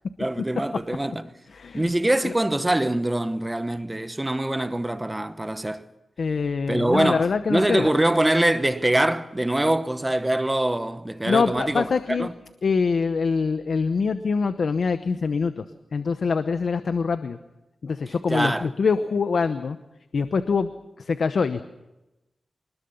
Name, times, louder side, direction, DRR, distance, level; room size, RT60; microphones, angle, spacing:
voice 1, 0.2-1.3 1.7-5.8 6.7-12.3 18.3-18.7, right 1 dB, 15° right, 0.9 m, -24 dB
voice 2, 1.5-1.9 2.2-2.3 6.2-7.9 11.3-12.3 12.6-15.6 15.9-17.4 17.8-19.8 20.1-20.7 21.0-21.6, left 5 dB, 65° left, 0.9 m, -24 dB
25.0 x 20.5 x 7.1 m
wide cardioid pair, 155°, 0 cm